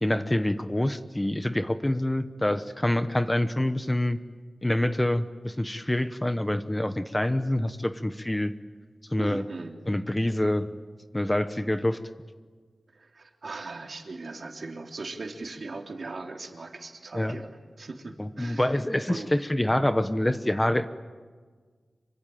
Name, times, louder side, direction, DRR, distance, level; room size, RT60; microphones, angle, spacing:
voice 1, 0.0-4.2 4.6-8.5 9.1-9.4 9.9-10.7 11.1-12.0 17.1-17.4 18.2-20.9, left 1 dB, 15° left, 10 dB, 1.1 m, -26 dB
voice 2, 9.2-9.8 12.9-18.8 19.1-19.3, right 3 dB, 55° right, 3 dB, 3.2 m, -39 dB
26.5 x 24.0 x 9.3 m, 1.5 s
wide cardioid pair, 95°, 0 cm